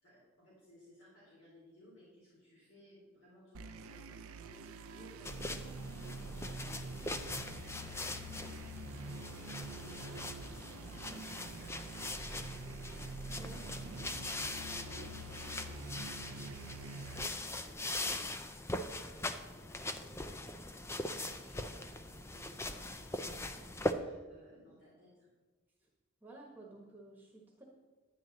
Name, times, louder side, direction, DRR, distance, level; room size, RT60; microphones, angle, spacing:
voice 1, 0.0-5.6 5.9-12.6 13.4-13.7 14.1-15.3 15.6-25.3, left 1 dB, 70° left, -7 dB, 3.7 m, -61 dB
sound 1, 3.5-17.3, right 2 dB, 85° right, 0.5 m, -46 dB
sound 2, 5.2-23.9, left 2 dB, 10° left, 0.4 m, -41 dB
voice 2, 8.0-8.4 13.3-13.6 25.8-25.9 26.2-27.6, right 2 dB, 10° right, -2 dB, 1.2 m, -54 dB
10.0 x 10.0 x 4.0 m, 1.3 s
head